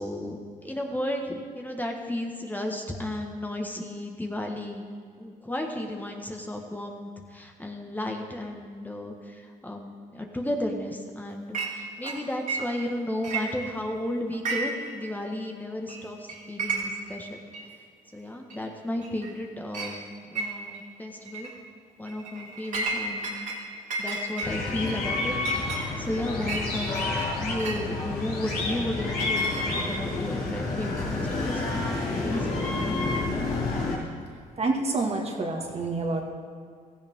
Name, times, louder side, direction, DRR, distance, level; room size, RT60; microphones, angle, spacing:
voice 1, 0.0-4.8 5.2-17.4 18.1-21.5 22.0-23.3 24.0-25.3 26.0-33.0, left 1 dB, 10° left, 1 dB, 1.5 m, -34 dB
Chink clink, 11.5-11.8 12.0-12.9 13.2-14.0 14.3-14.9 15.2-15.3 15.9-16.0 16.3-17.1 17.5-17.6 18.5-18.6 19.0-19.4 19.7-19.9 20.4-20.8 21.3-21.5 22.0-23.6 23.9-27.8 28.5-30.0, right 3 dB, 55° right, 3.1 m, -33 dB
sound 1, 24.4-33.9, left 3 dB, 80° left, 3.6 m, -29 dB
voice 2, 34.6-36.2, right 3 dB, 40° right, 1 dB, 2.1 m, -27 dB
16.0 x 14.5 x 3.7 m, 2.2 s
cardioid pair, 85°, 16 cm